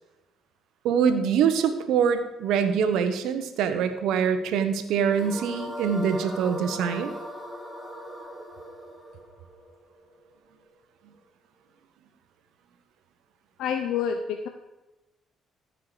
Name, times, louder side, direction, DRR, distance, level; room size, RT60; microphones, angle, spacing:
voice 1, 0.8-7.1, right 7 dB, 80° right, 9 dB, 1.0 m, -24 dB
sound 1, 5.1-10.3, equal, 5° left, 3.6 m, -38 dB
voice 2, 13.6-14.5, left 7 dB, 80° left, 6 dB, 0.7 m, -28 dB
14.5 x 5.7 x 5.0 m, 1.0 s
supercardioid pair, 75°, 0 cm